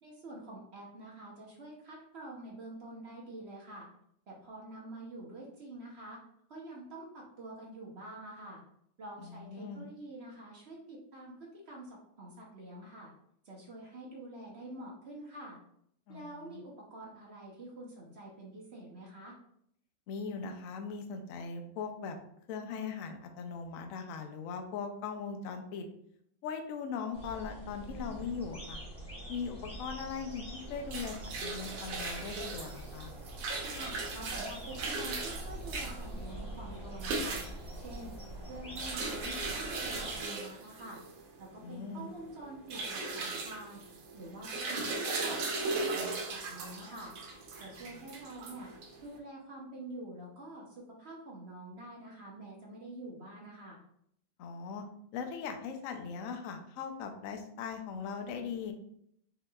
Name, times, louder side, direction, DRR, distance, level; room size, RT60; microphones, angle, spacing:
voice 1, 0.0-3.9 4.3-6.2 6.5-8.6 9.0-13.1 13.4-15.6 16.1-19.4 33.8-37.4 37.7-47.1 47.6-48.7 49.0-53.8, right 1 dB, 50° right, -3 dB, 0.8 m, -47 dB
voice 2, 9.2-9.9 16.1-16.6 20.1-22.2 22.5-25.9 26.4-28.8 29.3-33.1 41.6-42.1 47.9-48.0 54.4-54.8 55.1-58.7, left 5 dB, 85° left, 4 dB, 0.7 m, -40 dB
sound 1, 27.1-40.2, right 1 dB, 5° left, 1.1 m, -45 dB
sound 2, 30.6-49.1, right 3 dB, 85° right, 1.5 m, -38 dB
5.6 x 2.9 x 2.3 m, 0.71 s
omnidirectional pair, 2.1 m